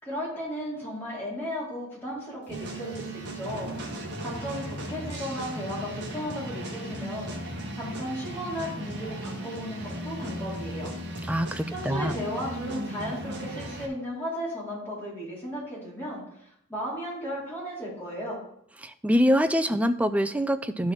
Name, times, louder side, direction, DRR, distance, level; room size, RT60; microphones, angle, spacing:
voice 1, 0.0-3.7 4.2-10.9 11.7-18.4, equal, 10° left, -7 dB, 4.1 m, -35 dB
sound 1, 2.5-13.9, equal, 55° right, 1.7 m, -36 dB
voice 2, 11.3-12.1 18.8-20.9, equal, 5° right, 10 dB, 0.4 m, -24 dB
12.0 x 4.9 x 4.3 m, 0.73 s
head